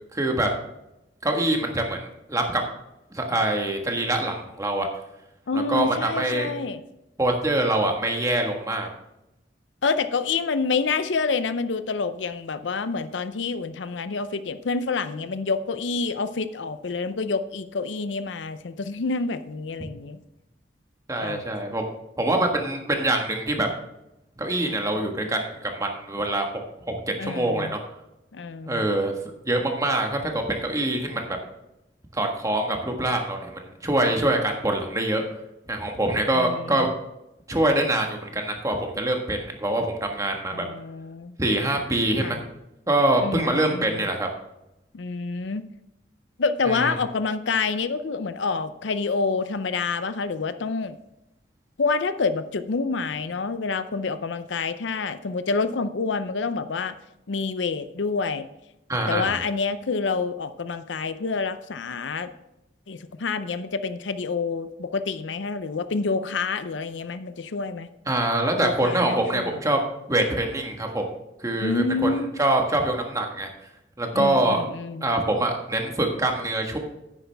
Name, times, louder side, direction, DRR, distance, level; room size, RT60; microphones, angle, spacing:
voice 1, 0.1-0.5 1.2-2.6 3.1-4.9 5.5-6.5 7.2-8.9 21.1-21.8 22.2-23.7 24.4-26.5 26.9-27.8 28.7-29.1 29.4-31.4 32.1-35.2 35.7-36.9 37.5-40.7 41.4-42.5 42.9-44.3 46.6-46.9 58.9-59.4 68.1-69.8 70.1-71.1 71.4-73.5 74.0-74.6 75.0-76.8, right 1 dB, 20° right, 2 dB, 1.5 m, -24 dB
voice 2, 5.5-6.8 9.8-20.2 21.2-21.4 27.2-27.7 28.3-28.9 36.3-36.9 40.5-41.4 42.2-42.4 43.2-44.1 44.9-45.6 46.4-51.0 51.8-56.9 57.3-58.5 59.1-62.3 62.9-67.9 68.6-69.6 71.6-72.3 74.1-75.1, left 4 dB, 80° left, 12 dB, 0.6 m, -28 dB
10.0 x 9.4 x 3.5 m, 0.88 s
head